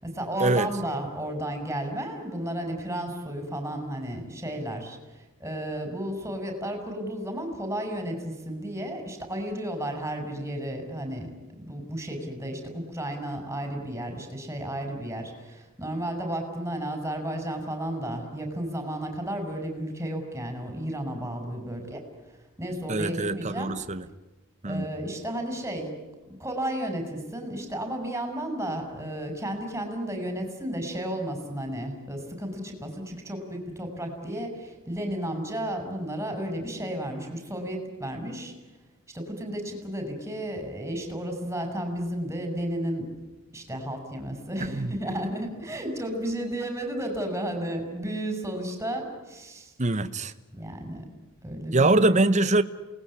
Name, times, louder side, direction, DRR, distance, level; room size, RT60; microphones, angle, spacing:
voice 1, 0.0-22.0 22.6-23.7 24.6-25.9 26.4-38.5 39.1-43.1 43.5-49.7 50.5-51.0 51.4-52.0, right 1 dB, 15° right, 5.9 m, -33 dB
voice 2, 22.9-24.0 24.6-24.9 44.6-44.9 49.8-50.3 51.7-52.6, right 2 dB, 35° right, 1.1 m, -23 dB
28.5 x 20.0 x 9.9 m
head